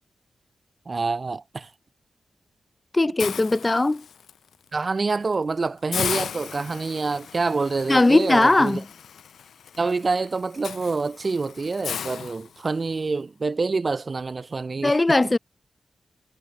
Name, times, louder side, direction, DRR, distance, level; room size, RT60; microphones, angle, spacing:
voice 1, 0.9-1.7 4.7-8.8 9.8-15.2, right 4 dB, 50° right, 2.5 m, -26 dB
voice 2, 2.9-4.0 7.9-8.8 14.8-15.4, left 2 dB, 30° left, 0.6 m, -19 dB
Hiss, 3.2-4.3 4.8-5.0 5.3-5.4 5.9-13.0, left 8 dB, 85° left, 5.9 m, -35 dB
cardioid pair, 50°, 0 cm